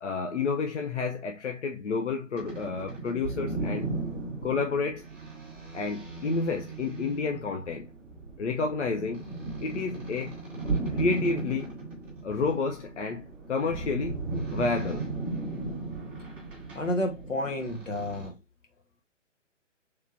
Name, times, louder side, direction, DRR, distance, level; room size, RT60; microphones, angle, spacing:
voice 1, 0.0-3.9 4.4-5.1 5.7-7.9 8.4-9.3 9.6-10.4 10.9-11.8 12.2-14.2 14.5-15.1, left 4 dB, 70° left, 0.6 m, -30 dB
sound 1, 2.3-18.3, right 3 dB, 5° right, 0.7 m, -36 dB
voice 2, 16.7-18.3, left 1 dB, 85° left, 1.2 m, -30 dB
3.3 x 3.2 x 2.5 m
figure-of-eight pair, 135°, 37 cm